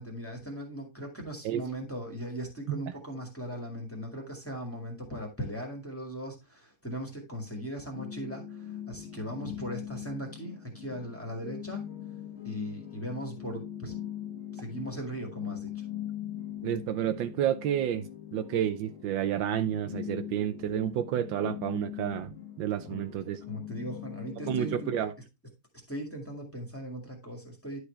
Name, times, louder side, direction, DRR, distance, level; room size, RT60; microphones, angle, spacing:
voice 1, 0.0-11.8 12.4-13.9 14.5-15.7 22.8-23.0 23.5-24.9 25.9-27.8, equal, 5° left, 2.0 m, -38 dB
sound 1, 7.9-25.0, left 11 dB, 40° left, 1.2 m, -41 dB
voice 2, 16.6-18.1 18.3-23.4 24.5-25.1, right 11 dB, 80° right, 1.4 m, -30 dB
10.5 x 4.9 x 3.3 m
omnidirectional pair, 2.1 m